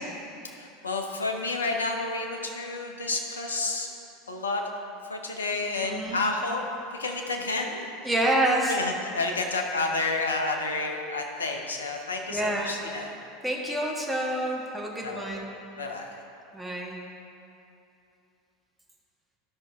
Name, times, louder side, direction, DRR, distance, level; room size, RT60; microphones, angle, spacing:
voice 1, 0.4-3.9 4.3-4.6 5.0-6.6 6.9-7.8 8.7-13.1 15.0-15.3 15.8-16.1, left 3 dB, 80° left, 2 dB, 0.9 m, -30 dB
voice 2, 5.8-6.2 8.0-8.8 12.3-12.7 13.4-15.5 16.5-17.0, right 1 dB, 5° right, -2 dB, 1.4 m, -27 dB
12.5 x 5.7 x 3.6 m, 2.7 s
figure-of-eight pair, 75°, 0 cm